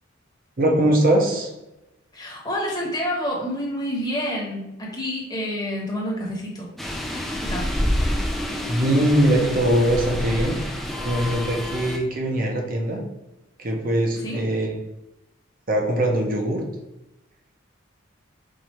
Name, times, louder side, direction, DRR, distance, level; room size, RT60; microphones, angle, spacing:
voice 1, 0.6-1.5 8.7-13.0 13.6-14.7 15.7-16.6, right 1 dB, 45° right, 1 dB, 0.8 m, -22 dB
voice 2, 2.1-6.7 7.3-7.7 14.2-14.4, equal, 20° left, -3 dB, 1.1 m, -28 dB
sound 1, 6.8-12.0, left 1 dB, ahead, 0.4 m, -27 dB
4.7 x 2.4 x 4.3 m, 0.93 s
head